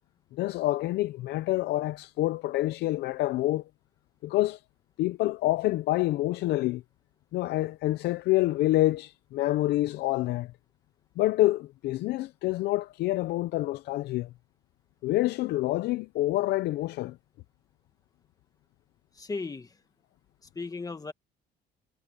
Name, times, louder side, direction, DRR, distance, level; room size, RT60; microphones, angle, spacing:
voice 1, 0.3-3.6 4.2-4.6 5.0-6.8 7.3-10.5 11.2-14.3 15.0-17.2, left 16 dB, 80° left, 0.6 m, -27 dB
voice 2, 19.2-19.7 20.6-21.1, left 4 dB, 20° left, 1.9 m, -35 dB
cardioid pair, 110°, 17 cm